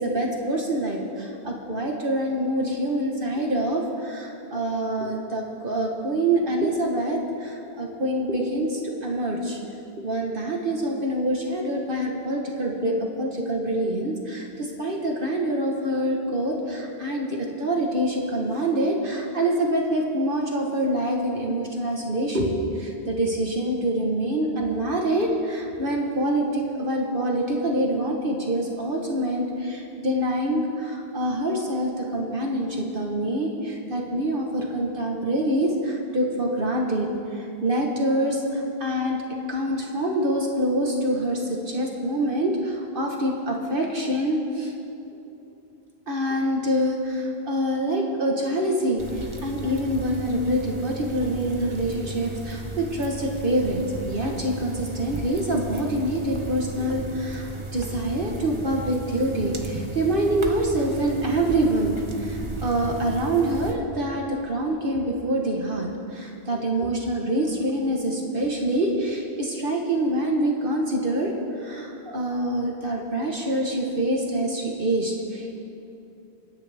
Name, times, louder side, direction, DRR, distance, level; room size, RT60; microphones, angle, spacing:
voice 1, 0.0-9.6 10.0-39.2 39.5-44.7 46.1-71.3 71.6-75.6, right 1 dB, 55° right, 0 dB, 1.6 m, -26 dB
sound 1, 49.0-63.7, right 2 dB, 30° right, 1.1 m, -35 dB
27.5 x 10.0 x 3.5 m, 2.8 s
omnidirectional pair, 1.1 m